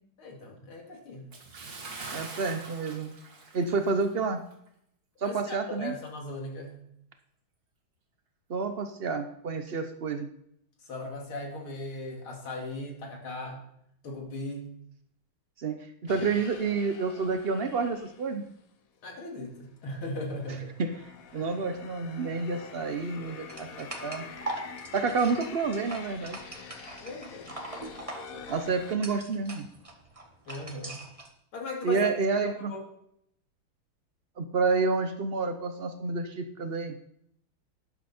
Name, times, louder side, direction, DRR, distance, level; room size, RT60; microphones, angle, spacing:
voice 1, 0.2-1.3 5.2-6.8 10.8-13.6 14.0-14.7 19.0-20.7 21.4-21.5 27.0-27.6 30.5-31.0 31.5-32.1 32.4-32.8, left 1 dB, 80° left, 0 dB, 3.3 m, -38 dB
Bathtub (filling or washing) / Splash splatter, 1.3-4.2 4.5-4.7 5.2-5.3, right 3 dB, 50° right, 2.1 m, -43 dB
voice 2, 2.1-3.1 3.5-4.4 5.2-5.9 8.5-10.3 15.6-15.8 16.0-18.4 20.8-20.9 21.3-24.2 24.9-26.4 28.5-29.7 31.8-32.7 34.4-37.0, right 4 dB, 85° right, 7 dB, 0.5 m, -29 dB
sound 1, 16.1-18.6 19.3-29.0, left 6 dB, 50° left, 1.2 m, -46 dB
sound 2, 23.5-31.3, right 2 dB, 20° right, 1.2 m, -42 dB
12.5 x 11.0 x 4.3 m, 0.73 s
omnidirectional pair, 2.3 m